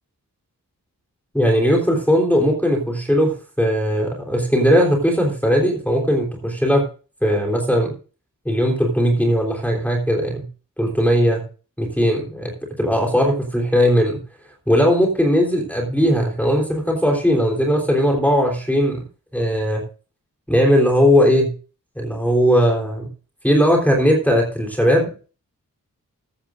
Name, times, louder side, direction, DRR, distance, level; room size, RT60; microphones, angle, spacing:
voice 1, 1.3-6.8 7.2-7.9 8.5-10.5 10.8-11.4 11.8-12.5 12.8-14.2 14.7-19.0 19.3-19.8 20.5-21.5 22.0-23.1 23.4-25.1, equal, 5° left, -1 dB, 3.5 m, -18 dB
15.0 x 13.5 x 2.5 m, 0.36 s
wide cardioid pair, 90°, 33 cm